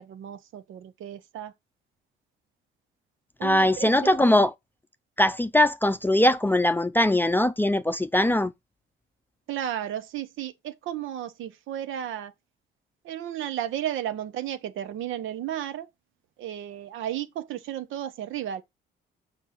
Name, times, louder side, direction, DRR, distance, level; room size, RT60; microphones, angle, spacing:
voice 1, 0.0-1.5 3.4-4.4 9.5-12.3 13.0-15.9 16.4-18.6, right 11 dB, 80° right, 0.9 m, -33 dB
voice 2, 3.4-4.5 5.2-8.5, left 1 dB, 10° left, 0.5 m, -21 dB
6.0 x 5.3 x 4.0 m
cardioid pair, 90°, 20 cm